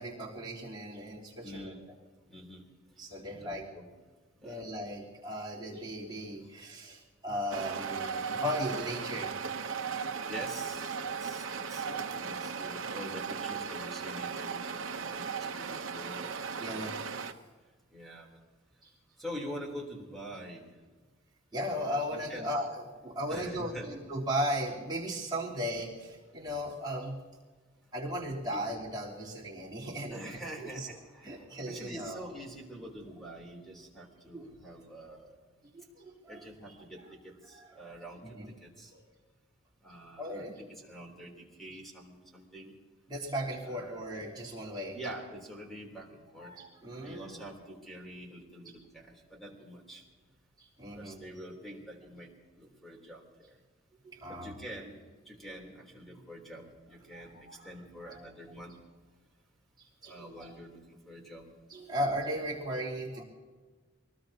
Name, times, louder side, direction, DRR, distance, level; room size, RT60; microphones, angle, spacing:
voice 1, 0.0-1.7 3.0-3.7 4.4-9.4 16.6-17.0 17.3-17.5 18.8-18.9 21.5-27.2 27.9-30.9 31.2-32.2 34.3-34.5 35.7-36.4 37.6-37.7 38.2-38.5 38.9-39.0 40.2-40.6 43.1-45.0 46.4-47.3 50.6-51.2 54.0-54.6 57.1-57.7 58.0-58.3 59.8-60.5 61.7-63.2, equal, 20° right, -7 dB, 3.6 m, -37 dB
voice 2, 1.4-1.8 2.3-2.6 3.4-3.9 4.4-4.6 10.3-16.8 17.9-18.3 19.2-20.7 22.3-22.5 23.3-23.9 28.5-28.6 30.1-35.4 36.3-38.9 39.8-42.7 43.6-44.0 44.9-46.6 47.0-50.0 50.9-53.6 54.3-57.4 57.6-58.7 60.0-61.5, equal, ahead, -1 dB, 3.5 m, -46 dB
sound 1, 7.5-17.3, right 6 dB, 75° right, 0.9 m, -37 dB
24.0 x 19.5 x 2.9 m, 1.4 s
head